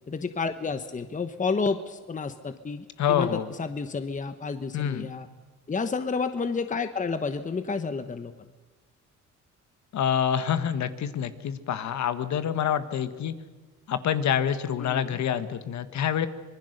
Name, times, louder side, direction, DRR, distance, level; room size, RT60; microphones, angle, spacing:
voice 1, 0.1-5.3 5.7-8.3 14.8-15.2, left 4 dB, 25° left, 9 dB, 1.1 m, -30 dB
voice 2, 3.0-3.5 4.7-5.1 9.9-13.3 13.9-16.3, left 9 dB, 65° left, 11 dB, 1.4 m, -27 dB
25.0 x 20.5 x 6.6 m, 1.3 s
cardioid pair, 90°, 30 cm